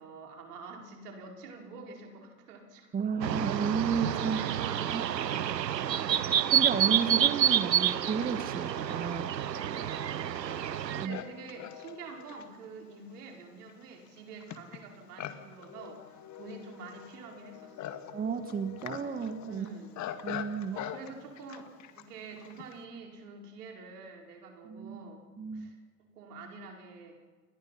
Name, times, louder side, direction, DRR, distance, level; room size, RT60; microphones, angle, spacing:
voice 1, 0.0-3.1 4.3-6.1 10.0-18.0 19.5-20.0 20.7-25.2 25.5-25.8 26.1-27.2, right 4 dB, 65° right, 2 dB, 4.6 m, -47 dB
voice 2, 2.9-4.4 4.9-5.0 6.3-9.3 11.0-11.2 18.1-19.7 20.2-20.8 24.6-25.0 25.4-25.7, right 6 dB, 15° right, 10 dB, 1.3 m, -32 dB
sound 1, 3.2-11.1, right 10 dB, 80° right, 0.7 m, -29 dB
Livestock farm animals working animals, 6.1-6.2 6.9-22.8, left 10 dB, 35° left, 1.9 m, -45 dB
29.5 x 21.0 x 5.7 m, 1.5 s
figure-of-eight pair, 85°, 49 cm